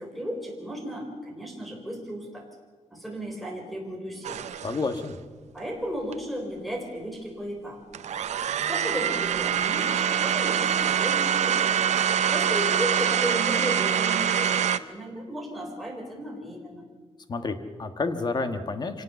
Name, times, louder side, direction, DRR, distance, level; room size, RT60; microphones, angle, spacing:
voice 1, 0.0-2.5 2.9-4.5 5.5-8.0 8.7-9.9 10.2-11.7 12.3-16.8, equal, ahead, -1 dB, 4.1 m, -34 dB
sound 1, 4.2-5.0 6.1-6.2 7.9-14.8, right 9 dB, 80° right, 0.7 m, -25 dB
voice 2, 4.6-5.1 17.3-19.0, left 3 dB, 35° left, 8 dB, 1.4 m, -29 dB
25.0 x 18.0 x 7.0 m, 1.4 s
wide cardioid pair, 175°, 12 cm